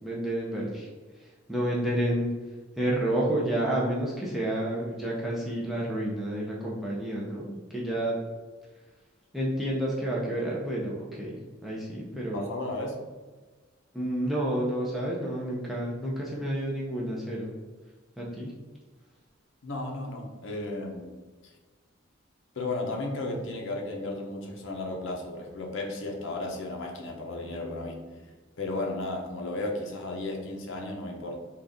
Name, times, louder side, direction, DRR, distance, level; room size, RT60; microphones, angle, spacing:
voice 1, 0.0-0.9 1.2-2.3 2.8-8.2 9.3-12.5 13.9-17.5 18.2-18.5, right 1 dB, ahead, -5 dB, 0.5 m, -30 dB
voice 2, 12.1-13.0 19.6-21.1 21.4-21.5 22.5-28.0 28.6-31.4, left 2 dB, 70° left, 1 dB, 0.7 m, -34 dB
3.8 x 2.4 x 3.4 m, 1.3 s
head